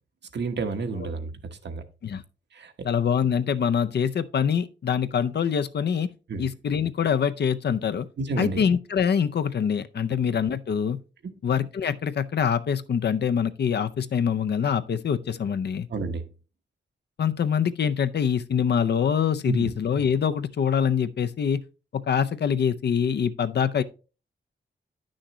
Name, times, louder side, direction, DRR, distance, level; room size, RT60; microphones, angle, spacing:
voice 1, 0.3-1.3 1.6-1.8 2.5-2.9 6.3-6.5 8.2-8.6 11.2-11.3 15.9-16.2 19.5-19.7, right 3 dB, 70° right, 1.1 m, -30 dB
voice 2, 2.8-6.1 6.4-8.1 8.4-11.0 11.4-15.9 17.2-21.6 21.9-23.8, left 7 dB, 65° left, 0.6 m, -24 dB
9.8 x 6.3 x 3.1 m
wide cardioid pair, 100°, 19 cm